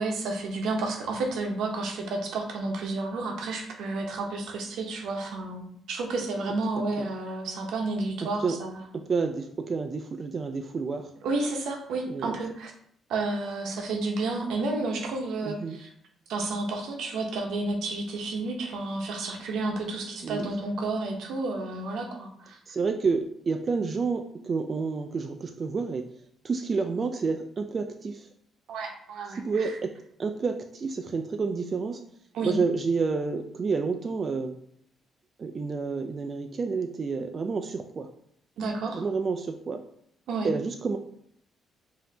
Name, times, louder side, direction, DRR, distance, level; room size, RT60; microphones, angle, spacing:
voice 1, 0.0-8.9 11.2-12.7 13.1-15.9 16.3-22.6 28.7-29.7 32.3-32.5 38.6-39.0 40.3-40.5, right 3 dB, 80° right, 2 dB, 0.8 m, -31 dB
voice 2, 8.9-11.1 12.1-12.4 15.4-15.8 20.2-20.4 22.7-26.0 26.4-28.3 29.3-29.9 30.2-32.0 32.4-34.5 35.4-38.1 38.9-39.8 40.4-41.0, right 4 dB, 40° right, 5 dB, 0.3 m, -29 dB
5.1 x 2.7 x 2.8 m, 0.68 s
cardioid pair, 90°, 0 cm